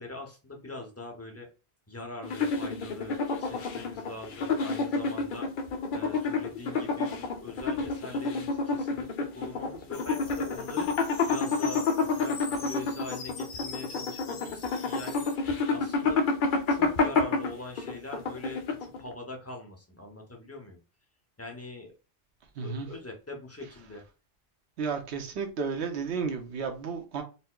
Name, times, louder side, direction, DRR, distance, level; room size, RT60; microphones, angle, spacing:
voice 1, 0.0-1.5 1.9-5.5 5.9-11.9 12.1-16.2 16.7-20.8 21.4-21.9 22.6-24.0, left 2 dB, 15° left, 0.6 m, -42 dB
sound 1, 2.2-19.1, left 4 dB, 60° left, 0.7 m, -29 dB
sound 2, 9.9-15.4, left 5 dB, 80° left, 0.9 m, -43 dB
voice 2, 22.6-22.9 24.8-27.2, right 5 dB, 85° right, 1.0 m, -32 dB
4.2 x 2.0 x 2.2 m
omnidirectional pair, 1.1 m